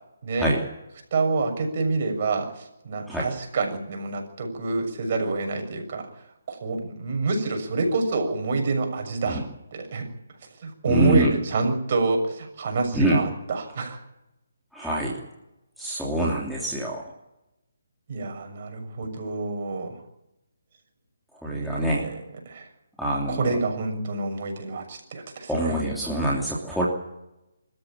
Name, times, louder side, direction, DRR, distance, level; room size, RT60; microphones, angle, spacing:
voice 1, 1.1-6.1 6.5-10.1 10.6-14.0 18.1-20.0 21.5-22.7 23.3-25.8, right 3 dB, 45° right, 4 dB, 6.8 m, -27 dB
voice 2, 10.9-11.3 12.9-13.2 14.7-15.2 15.8-17.0 21.4-22.1 23.0-23.5 25.5-26.9, right 1 dB, ahead, -5 dB, 3.0 m, -25 dB
25.0 x 14.0 x 8.9 m, 0.92 s
hypercardioid pair, 160°, 0 cm